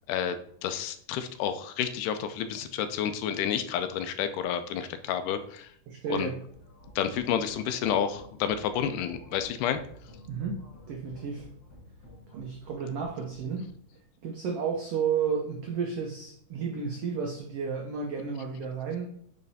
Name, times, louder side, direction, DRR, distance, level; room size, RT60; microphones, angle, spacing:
voice 1, 0.1-5.7 6.1-6.3 7.0-9.8, left 9 dB, 85° left, 10 dB, 2.1 m, -30 dB
voice 2, 5.9-6.4 10.3-10.6 10.9-11.5 12.3-13.7 14.2-19.1, right 6 dB, 80° right, 1 dB, 1.3 m, -32 dB
sound 1, 6.5-13.7, left 1 dB, 35° left, 1.4 m, -51 dB
8.6 x 3.3 x 4.0 m, 0.64 s
omnidirectional pair, 3.7 m